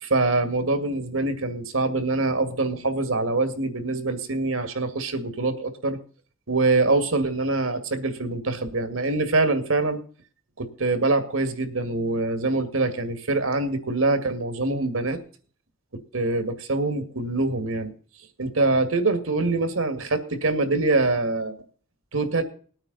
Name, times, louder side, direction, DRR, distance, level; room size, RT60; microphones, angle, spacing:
voice 1, 0.0-6.0 6.5-10.0 10.6-15.2 15.9-17.9 18.4-21.5 22.1-22.4, right 3 dB, 90° right, 8 dB, 2.1 m, -24 dB
20.0 x 8.9 x 4.1 m, 0.43 s
head